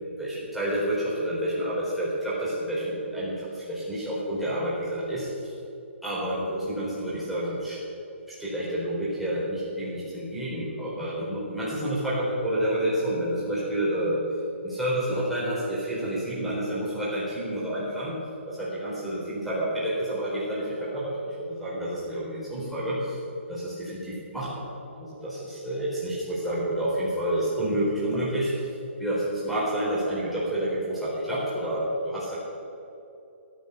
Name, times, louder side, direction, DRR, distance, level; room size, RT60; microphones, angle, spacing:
voice 1, 0.2-5.3 6.0-7.8 8.4-14.2 14.6-18.2 18.5-23.2 23.5-24.6 24.9-28.5 29.0-32.3, right 1 dB, ahead, -10 dB, 4.2 m, -29 dB
14.5 x 9.2 x 6.8 m, 2.6 s
hypercardioid pair, 160°, 7 cm